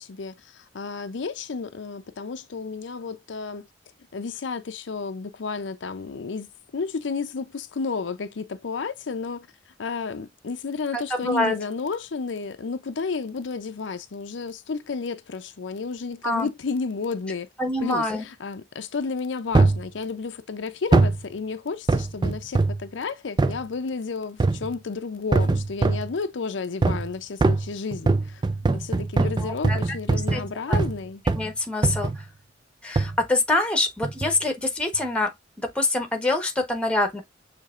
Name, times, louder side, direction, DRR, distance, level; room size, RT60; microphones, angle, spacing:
voice 1, 0.0-3.7 4.1-9.5 9.8-17.5 17.8-28.4 28.7-31.2, left 4 dB, 75° left, 0.5 m, -32 dB
voice 2, 10.9-11.5 16.2-16.5 17.6-18.2 29.2-29.8 30.3-30.4 30.7-30.8 31.3-32.1 32.8-37.2, left 2 dB, 5° left, 1.1 m, -25 dB
sound 1, 19.5-19.9 20.9-21.2 21.9-22.8 23.4-23.6 24.4-24.7 25.3-26.1 26.8-27.1 27.4-31.0 31.3-31.5 31.8-32.2 33.0-33.2 34.0-34.3 34.9-35.0, right 3 dB, 25° right, 0.3 m, -22 dB
6.6 x 3.3 x 2.4 m
head